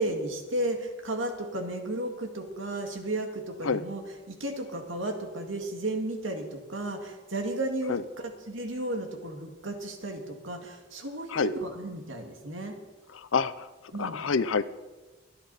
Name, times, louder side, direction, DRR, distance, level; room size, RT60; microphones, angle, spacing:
voice 1, 0.0-4.0 4.3-12.7 13.9-14.2, right 1 dB, 80° right, 4 dB, 2.1 m, -33 dB
voice 2, 13.1-13.7 14.0-14.6, left 5 dB, 85° left, 15 dB, 0.7 m, -27 dB
24.5 x 10.0 x 4.2 m, 1.2 s
head